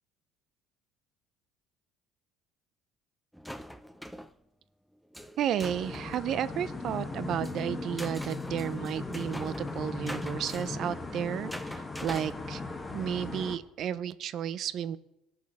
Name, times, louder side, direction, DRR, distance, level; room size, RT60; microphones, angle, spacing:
sound 1, 3.3-4.3 5.1-6.4 7.2-12.3, equal, ahead, 0.6 m, -44 dB
voice 1, 5.4-12.6 12.9-15.0, right 9 dB, 55° right, 15 dB, 0.6 m, -33 dB
sound 2, 5.6-13.6, left 3 dB, 20° left, 1.2 m, -38 dB
18.0 x 6.3 x 4.8 m, 0.87 s
supercardioid pair, 90°, 0 cm